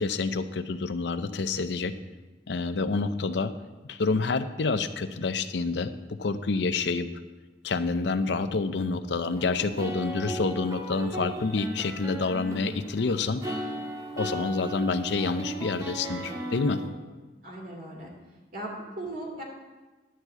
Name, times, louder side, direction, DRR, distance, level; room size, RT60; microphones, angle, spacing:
voice 1, 0.0-1.9 2.5-3.5 3.9-7.1 7.6-13.4 14.2-16.8, left 4 dB, 75° left, 11 dB, 0.6 m, -28 dB
sound 1, 9.3-16.9, equal, 20° right, 1.5 m, -36 dB
voice 2, 17.4-18.1 18.5-19.4, right 1 dB, 55° right, -2 dB, 2.2 m, -37 dB
11.5 x 4.7 x 7.8 m, 1.2 s
head